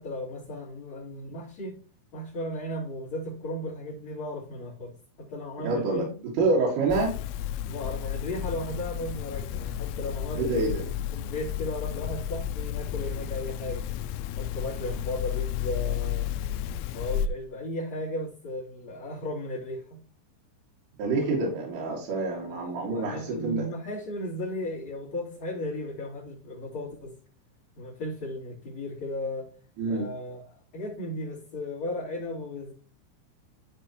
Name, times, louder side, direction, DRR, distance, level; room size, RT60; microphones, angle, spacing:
voice 1, 0.0-1.7 2.1-6.7 7.6-14.0 14.4-16.3 16.9-20.0 22.5-27.1 27.8-29.5 29.9-32.7, left 1 dB, 40° left, 3.9 m, -35 dB
voice 2, 5.6-6.0 6.4-7.1 10.4-10.8 21.0-23.7 29.8-30.1, right 3 dB, 80° right, 4.9 m, -27 dB
sound 1, 6.9-17.3, left 10 dB, 85° left, 3.1 m, -32 dB
14.0 x 4.8 x 3.0 m
omnidirectional pair, 5.7 m